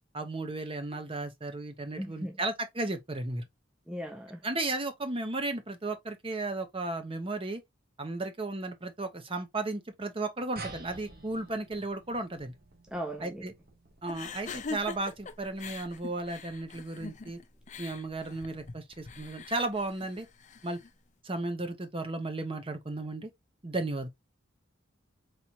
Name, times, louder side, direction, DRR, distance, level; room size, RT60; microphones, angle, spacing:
voice 1, 0.1-3.4 4.4-7.6 8.0-12.5 13.2-13.5 14.0-17.4 17.8-20.3 20.6-20.8 21.2-23.3 23.6-24.1, right 2 dB, 30° right, 0.9 m, -34 dB
voice 2, 2.0-2.4 3.9-4.4 12.9-13.5, equal, 5° right, 0.6 m, -38 dB
sound 1, 10.6-15.4, right 3 dB, 50° right, 1.3 m, -49 dB
sound 2, 14.1-20.9, left 4 dB, 40° left, 0.6 m, -43 dB
4.3 x 3.3 x 2.9 m
head